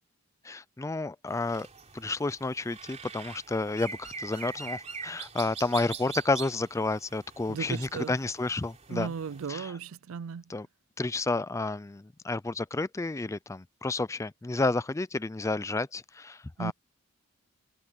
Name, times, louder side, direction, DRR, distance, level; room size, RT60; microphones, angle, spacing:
voice 1, 0.4-1.7 1.9-9.1 9.5-9.8 10.5-10.7 11.0-16.7, left 3 dB, 15° left, 0.3 m, -31 dB
sound 1, 1.3-9.5, right 5 dB, 30° right, 4.0 m, -44 dB
voice 2, 7.5-8.1 8.9-10.4 16.6-16.7, right 6 dB, 65° right, 0.4 m, -35 dB
head